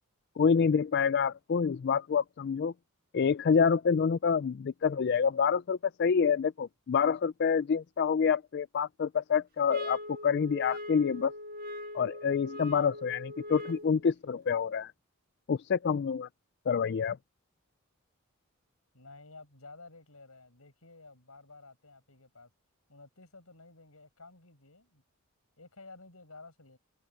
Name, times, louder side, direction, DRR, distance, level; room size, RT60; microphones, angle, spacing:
voice 1, 0.4-2.7 3.1-11.3 11.9-14.9 15.5-16.3 16.7-17.2, left 6 dB, 50° left, 0.3 m, -27 dB
sound 1, 9.7-14.0, left 1 dB, 40° right, 1.6 m, -41 dB
voice 2, 18.9-22.5 22.9-25.0 25.6-26.8, left 3 dB, 75° left, 6.7 m, -53 dB
head